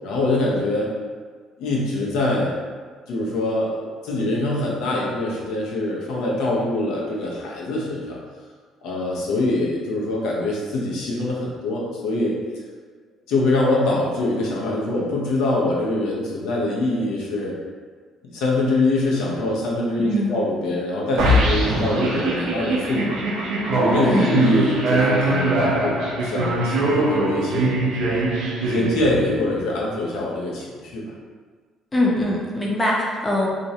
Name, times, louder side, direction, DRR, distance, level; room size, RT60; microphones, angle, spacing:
voice 1, 0.0-0.9 1.6-2.5 3.1-8.2 8.8-12.3 13.3-17.5 18.3-23.2 23.7-28.2 28.6-31.1, left 2 dB, 85° left, -4 dB, 0.6 m, -24 dB
voice 2, 20.0-20.4 24.0-24.3 31.9-33.5, left 1 dB, 20° left, -3 dB, 0.5 m, -22 dB
sound 1, 21.2-29.5, right 1 dB, 75° right, 0.5 m, -22 dB
2.5 x 2.0 x 2.7 m, 1.5 s
cardioid pair, 110°, 0 cm